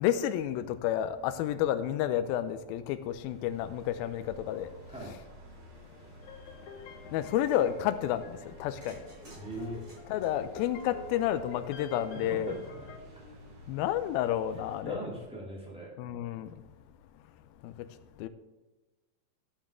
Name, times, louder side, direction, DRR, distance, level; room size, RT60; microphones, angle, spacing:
voice 1, 0.0-4.7 5.0-5.2 7.1-9.0 10.1-12.5 13.7-15.0 16.0-16.6 17.6-17.9 18.2-18.3, left 11 dB, 85° left, 2.4 m, -30 dB
sound 1, 3.0-14.8, equal, 70° right, 5.0 m, -52 dB
sound 2, 6.2-13.0, left 5 dB, 65° left, 2.0 m, -49 dB
sound 3, 7.1-7.7 8.8-11.3, right 2 dB, 30° right, 4.5 m, -55 dB
voice 2, 9.4-9.8 12.1-12.9 14.8-15.9, right 1 dB, ahead, 1.8 m, -40 dB
11.5 x 8.9 x 3.6 m
omnidirectional pair, 4.4 m